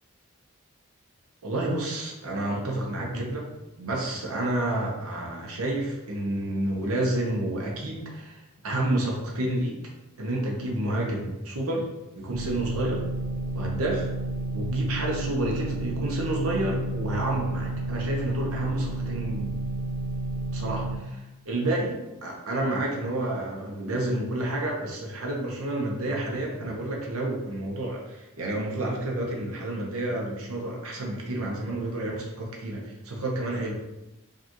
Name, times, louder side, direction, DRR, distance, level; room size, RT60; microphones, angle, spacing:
voice 1, 1.4-3.5 3.8-9.7 10.2-11.9 12.1-13.0 13.5-14.1 14.5-19.6 20.5-33.7, right 1 dB, 85° right, -1 dB, 0.8 m, -29 dB
sound 1, 12.3-21.0, right 2 dB, 70° right, 1.2 m, -31 dB
4.8 x 2.4 x 3.0 m, 0.97 s
head